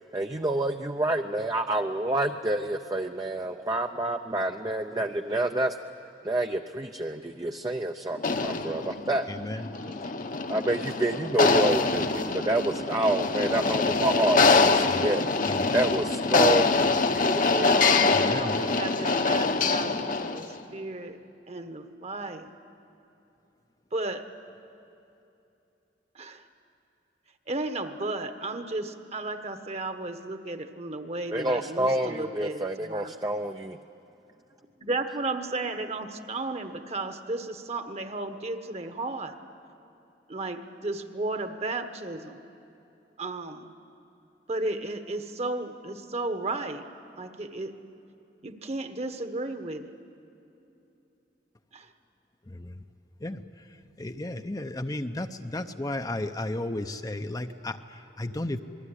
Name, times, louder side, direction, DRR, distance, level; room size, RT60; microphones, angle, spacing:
voice 1, 0.1-5.8 6.2-9.3 9.5-9.9 10.5-15.2 15.7-17.6 31.3-33.8, right 1 dB, 20° right, 5 dB, 0.6 m, -28 dB
sound 1, 8.2-20.5, left 4 dB, 50° left, 1.0 m, -24 dB
voice 2, 9.3-9.7 14.9-15.1 15.5-15.8 18.1-18.6 52.5-52.8 53.2-53.7 54.0-58.6, left 1 dB, 20° left, 7 dB, 0.7 m, -34 dB
voice 3, 17.4-21.2 21.5-22.5 23.9-24.3 26.1-26.4 27.5-33.1 34.8-39.4 40.3-42.4 43.2-43.7 44.5-46.9 47.2-47.8 48.4-49.9 51.7-51.9, right 2 dB, 35° right, 8 dB, 1.3 m, -34 dB
28.0 x 20.5 x 10.0 m, 2.8 s
head